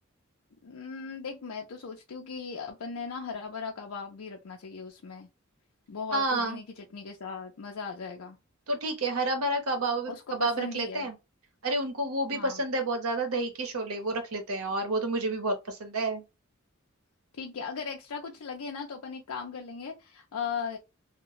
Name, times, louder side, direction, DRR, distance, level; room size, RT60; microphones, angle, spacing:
voice 1, 0.6-5.3 5.9-8.4 10.1-11.1 12.3-12.6 17.3-20.8, left 5 dB, 90° left, 0.5 m, -38 dB
voice 2, 6.1-6.6 8.7-11.1 11.6-16.2, right 2 dB, 90° right, 0.9 m, -30 dB
2.2 x 2.0 x 3.7 m
head